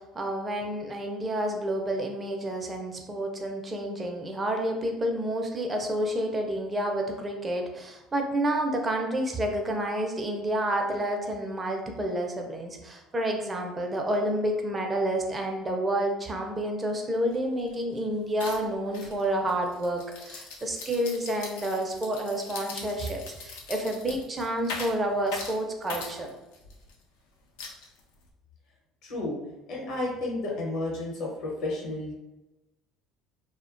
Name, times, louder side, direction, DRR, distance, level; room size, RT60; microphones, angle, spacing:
voice 1, 0.0-26.3, right 1 dB, 25° right, 2 dB, 0.4 m, -29 dB
sound 1, 17.3-17.4 17.7-18.0 18.4-26.9 27.6-28.3, left 4 dB, 85° left, 0.4 m, -41 dB
voice 2, 29.0-29.4 29.7-32.1, left 2 dB, 65° left, -3 dB, 0.9 m, -32 dB
2.3 x 2.1 x 2.5 m, 0.98 s
supercardioid pair, 80°, 0 cm